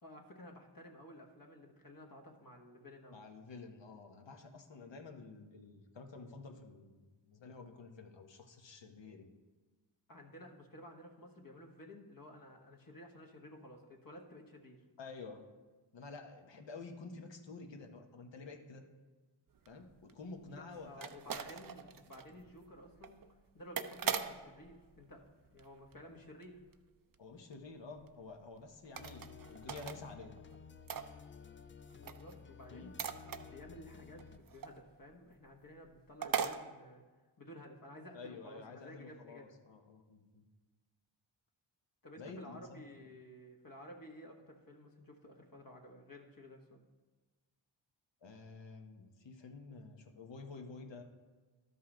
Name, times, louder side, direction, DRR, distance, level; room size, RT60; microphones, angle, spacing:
voice 1, 0.0-3.2 10.1-14.8 20.5-23.2 23.5-26.6 32.0-33.0 33.5-37.0 37.4-39.5 42.0-46.8, left 1 dB, 45° left, 1 dB, 1.3 m, -53 dB
voice 2, 3.1-9.3 15.0-15.5 15.9-18.8 19.7-21.4 21.7-21.9 22.3-22.4 27.2-30.3 32.7-32.9 38.1-40.4 42.2-42.8 48.2-51.0, left 4 dB, 65° left, 3 dB, 1.2 m, -50 dB
sound 1, 19.6-26.2 26.4-26.9 27.1-27.2 27.5-27.6 28.0-28.1 28.8-30.0 30.2-31.6 31.9-35.1 35.5-35.6 35.8-35.9 36.2-36.6, right 7 dB, 45° right, 0.6 m, -41 dB
sound 2, 29.0-34.4, left 6 dB, 30° left, 0.3 m, -54 dB
12.5 x 5.5 x 3.8 m, 1.3 s
cardioid pair, 65°, 48 cm